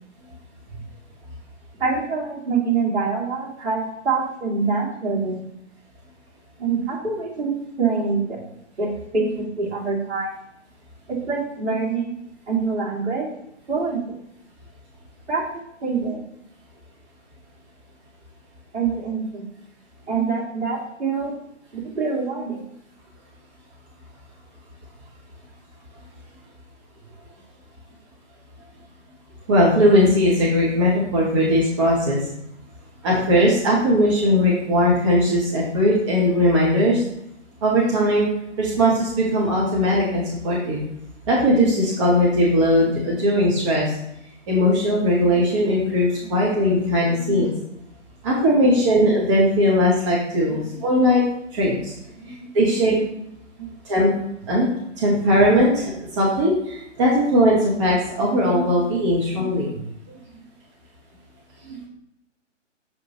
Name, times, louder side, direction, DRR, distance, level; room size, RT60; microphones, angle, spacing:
voice 1, 1.8-5.4 6.6-8.4 8.8-10.3 11.1-12.1 12.5-13.3 13.7-14.2 15.3-16.2 18.7-19.5 20.1-21.3 21.7-22.6 47.1-47.3 50.5-50.6 52.2-52.8 53.6-53.7 59.4-59.5 59.7-60.4 61.6-61.8, right 4 dB, 60° right, -4 dB, 2.5 m, -26 dB
voice 2, 29.5-32.2 33.0-37.0 37.6-38.3 38.6-40.8 41.3-44.0 44.5-47.5 48.2-51.2 51.5-51.9 52.3-53.0 53.8-54.1 54.5-54.7 55.0-59.7, equal, 25° right, -4 dB, 1.0 m, -19 dB
6.8 x 4.8 x 3.0 m, 0.79 s
figure-of-eight pair, 140°, 37 cm